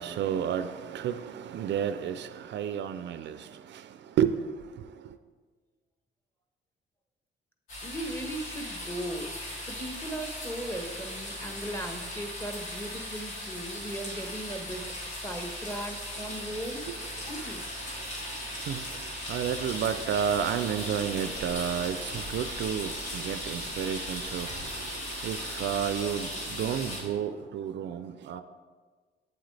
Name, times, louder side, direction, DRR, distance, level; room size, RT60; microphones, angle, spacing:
voice 1, 0.0-3.9 4.2-4.3 16.9-17.0 18.6-28.4, right 9 dB, 65° right, 0.4 m, -31 dB
sound 1, 7.7-27.0, left 1 dB, 85° left, 2.5 m, -38 dB
voice 2, 7.8-16.8 17.2-17.6, right 1 dB, 10° left, 1.2 m, -38 dB
8.5 x 8.0 x 3.3 m
cardioid pair, 90°, 20 cm